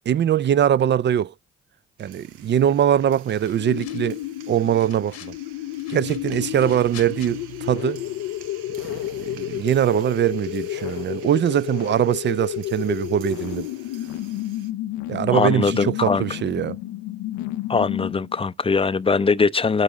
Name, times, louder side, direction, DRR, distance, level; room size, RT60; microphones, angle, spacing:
voice 1, 0.1-1.3 2.0-4.2 4.5-5.3 5.9-8.0 9.2-13.7 15.1-16.8, right 10 dB, 40° right, 0.4 m, -22 dB
sound 1, 2.0-14.7, right 9 dB, 80° right, 0.7 m, -46 dB
sound 2, 3.2-4.3 4.6-5.4 5.7-7.3, left 8 dB, 55° left, 1.1 m, -45 dB
sound 3, 3.5-18.4, left 14 dB, 75° left, 0.5 m, -31 dB
voice 2, 15.3-16.2 17.7-19.8, left 4 dB, 20° left, 0.5 m, -21 dB
8.9 x 3.8 x 6.3 m
hypercardioid pair, 45°, 30 cm